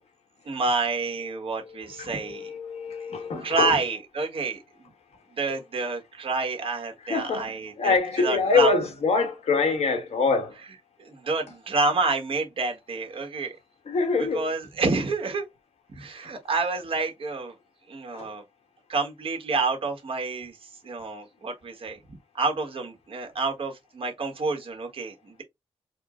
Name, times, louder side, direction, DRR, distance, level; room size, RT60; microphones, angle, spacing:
voice 1, 0.4-2.5 3.4-4.9 5.3-8.7 11.0-13.6 14.2-15.4 15.9-17.5 17.9-18.4 18.9-22.0 22.3-25.4, right 3 dB, 55° right, 1.2 m, -28 dB
voice 2, 1.7-3.7 7.1-7.4 7.8-10.5 13.9-14.5 18.1-18.3, left 4 dB, 85° left, 1.2 m, -25 dB
4.3 x 2.0 x 3.6 m
wide cardioid pair, 160°, 11 cm